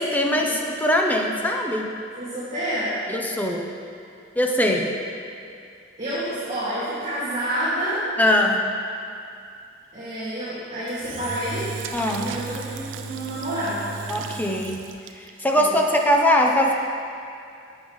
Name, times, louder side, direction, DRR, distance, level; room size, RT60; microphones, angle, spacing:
voice 1, 0.0-1.9 3.1-3.7 4.4-4.9 8.2-8.7 11.9-12.3 14.1-14.9 15.4-16.7, left 1 dB, 10° left, 1 dB, 0.7 m, -21 dB
voice 2, 2.2-3.0 6.0-8.1 9.9-11.7 12.2-14.1 15.5-15.8, right 1 dB, 35° right, -12 dB, 2.2 m, -29 dB
Engine / Drill, 10.9-15.4, right 5 dB, 80° right, 0.5 m, -35 dB
11.0 x 8.4 x 3.2 m, 2.4 s
head